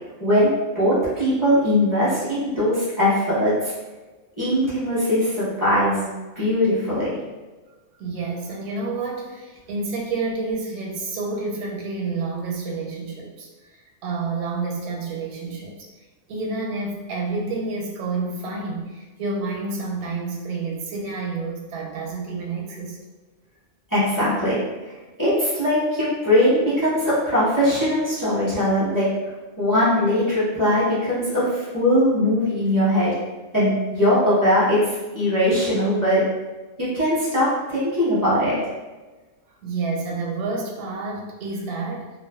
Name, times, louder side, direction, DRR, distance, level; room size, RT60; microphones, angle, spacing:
voice 1, 0.2-3.7 4.4-6.1 6.3-7.2 23.9-24.6 25.2-29.1 29.6-33.1 33.5-36.2 36.8-38.6, equal, 15° left, -11 dB, 0.7 m, -20 dB
voice 2, 8.0-15.9 16.3-23.0 39.6-42.1, right 3 dB, 85° right, -1 dB, 1.1 m, -29 dB
2.5 x 2.3 x 2.3 m, 1.2 s
omnidirectional pair, 1.5 m